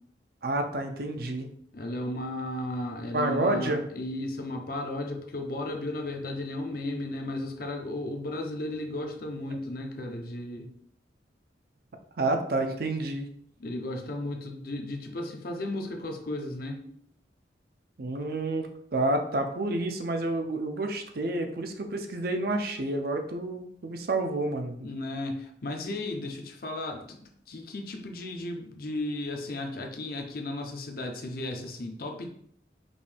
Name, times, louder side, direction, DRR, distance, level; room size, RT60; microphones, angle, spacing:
voice 1, 0.4-1.5 3.1-3.8 12.2-13.3 18.0-24.7, right 2 dB, 55° right, 5 dB, 0.5 m, -29 dB
voice 2, 1.7-10.7 13.6-16.9 24.8-32.3, left 1 dB, 50° left, 3 dB, 0.6 m, -35 dB
5.2 x 2.6 x 3.4 m, 0.65 s
head